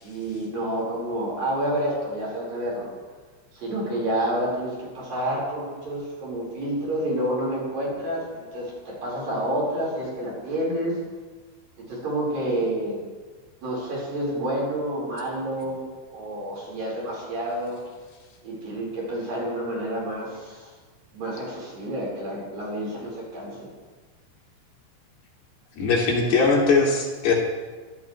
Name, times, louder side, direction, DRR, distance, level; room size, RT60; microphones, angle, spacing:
voice 1, 0.0-2.9 3.5-11.0 11.8-13.0 13.6-15.8 16.1-17.8 18.4-20.7 21.1-23.7, right 1 dB, 50° right, -5 dB, 6.2 m, -29 dB
voice 2, 25.8-27.3, left 4 dB, 60° left, -2 dB, 4.7 m, -20 dB
24.5 x 14.0 x 3.3 m, 1.4 s
omnidirectional pair, 5.5 m